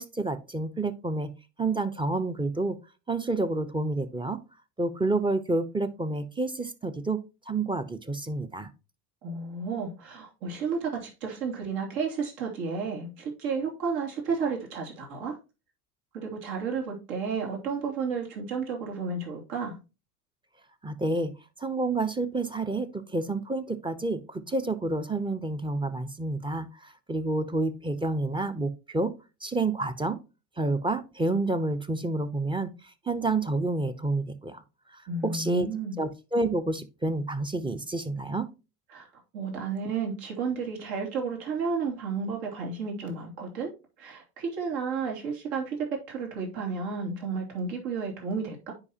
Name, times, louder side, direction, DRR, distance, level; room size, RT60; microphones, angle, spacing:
voice 1, 0.0-1.3 1.6-2.8 3.1-4.4 4.8-7.2 7.5-8.7 20.8-21.3 21.6-29.1 29.4-30.2 30.6-32.7 33.1-34.6 34.9-35.7 36.0-38.5, right 2 dB, 10° right, 0.8 m, -29 dB
voice 2, 9.2-15.4 16.1-19.8 35.1-36.0 38.9-39.1 39.3-43.7 44.0-45.8 46.1-48.7, right 5 dB, 65° right, 2.9 m, -32 dB
9.8 x 4.9 x 2.8 m
hypercardioid pair, 80°, 47 cm